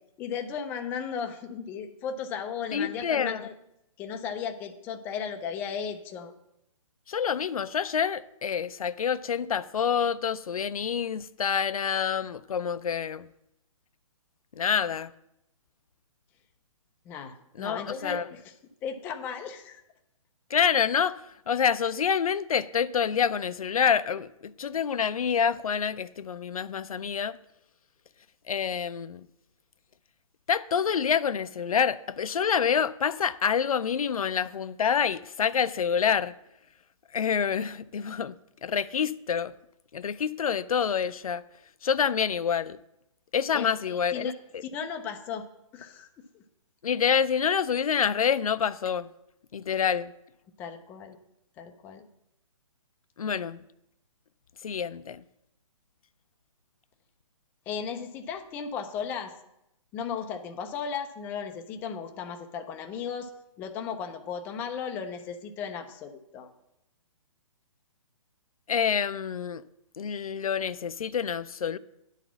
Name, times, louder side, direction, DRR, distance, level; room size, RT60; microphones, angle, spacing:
voice 1, 0.2-3.5 4.0-6.3 17.1-18.5 18.8-19.8 43.5-44.3 44.6-45.4 45.7-46.1 46.3-46.4 50.6-51.2 51.6-52.1 57.7-59.3 59.9-63.3 63.6-66.5, left 7 dB, 10° left, 0.3 m, -35 dB
voice 2, 2.7-3.5 7.1-13.3 14.5-15.1 17.6-18.3 20.5-27.4 28.5-29.3 30.5-36.4 37.1-39.5 39.9-41.4 41.8-42.8 43.3-44.6 46.8-49.1 49.5-50.1 53.2-53.6 54.6-55.2 68.7-69.6 70.0-71.8, left 7 dB, 85° left, 0.4 m, -27 dB
10.0 x 4.1 x 7.1 m
hypercardioid pair, 145°, 18 cm